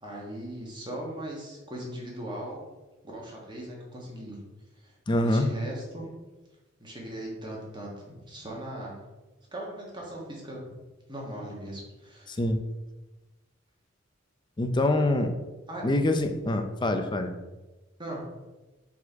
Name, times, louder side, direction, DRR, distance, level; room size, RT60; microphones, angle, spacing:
voice 1, 0.0-2.6 3.0-4.4 4.8-6.1 6.8-9.0 9.5-10.7 11.1-12.4 15.7-15.8 18.0-18.2, right 1 dB, 25° right, -3 dB, 1.5 m, -39 dB
voice 2, 5.1-5.5 12.4-12.6 14.6-15.4 15.8-17.3, left 1 dB, 25° left, 7 dB, 0.5 m, -25 dB
4.8 x 4.2 x 4.6 m, 1.1 s
head